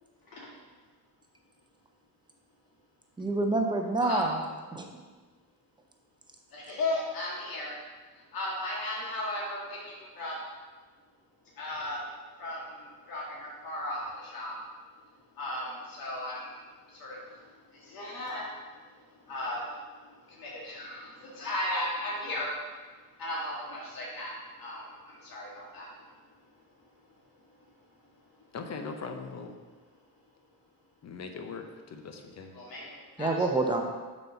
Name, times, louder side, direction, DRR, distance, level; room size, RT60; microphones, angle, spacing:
voice 1, 3.2-4.4 4.7-4.9 33.2-33.8, right 2 dB, 10° right, 3 dB, 0.7 m, -27 dB
voice 2, 6.5-7.8 8.2-10.4 11.6-12.0 12.4-14.6 15.3-16.6 16.9-18.6 19.0-19.8 20.3-22.6 23.2-25.9 32.5-33.5, left 1 dB, 70° left, -5 dB, 1.8 m, -36 dB
voice 3, 28.5-29.6 31.0-32.6, left 4 dB, 45° left, 5 dB, 0.8 m, -40 dB
6.8 x 4.2 x 5.8 m, 1.4 s
cardioid pair, 145°, 37 cm